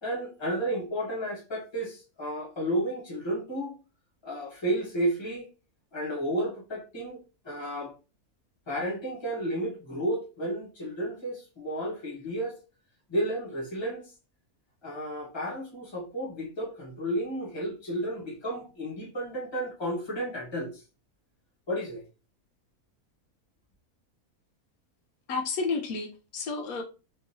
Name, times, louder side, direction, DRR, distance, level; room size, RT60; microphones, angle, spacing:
voice 1, 0.0-3.7 4.2-5.5 5.9-7.9 8.7-12.6 13.1-14.1 14.8-20.7 21.7-22.0, right 1 dB, 20° left, 1.1 m, -32 dB
voice 2, 25.3-26.8, left 4 dB, 80° left, 1.1 m, -31 dB
3.6 x 2.6 x 2.7 m
omnidirectional pair, 1.5 m